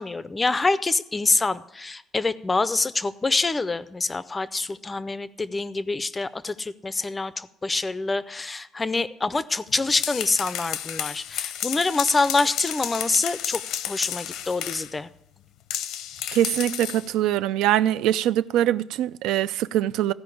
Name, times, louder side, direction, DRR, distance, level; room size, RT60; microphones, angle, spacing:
voice 1, 0.0-15.1, left 3 dB, 15° left, 0.4 m, -26 dB
sound 1, 9.7-14.9 15.7-17.1, left 10 dB, 75° left, 0.7 m, -32 dB
voice 2, 16.3-20.1, right 12 dB, 85° right, 0.4 m, -23 dB
15.5 x 5.2 x 8.4 m
cardioid pair, 170°, 0 cm